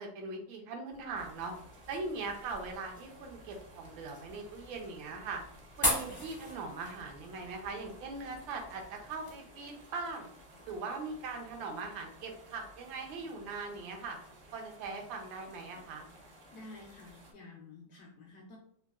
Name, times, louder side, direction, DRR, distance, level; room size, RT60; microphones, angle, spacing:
voice 1, 0.0-1.5 1.9-5.4 5.8-10.3 10.7-14.2 14.5-16.1, right 3 dB, 80° right, 3 dB, 1.4 m, -40 dB
sound 1, 0.9-9.4, equal, 25° left, 0.4 m, -40 dB
sound 2, 1.1-17.3, equal, 60° right, 0.8 m, -56 dB
voice 2, 16.5-18.6, left 2 dB, 70° left, -1 dB, 0.9 m, -51 dB
4.0 x 2.6 x 2.3 m, 0.65 s
omnidirectional pair, 2.1 m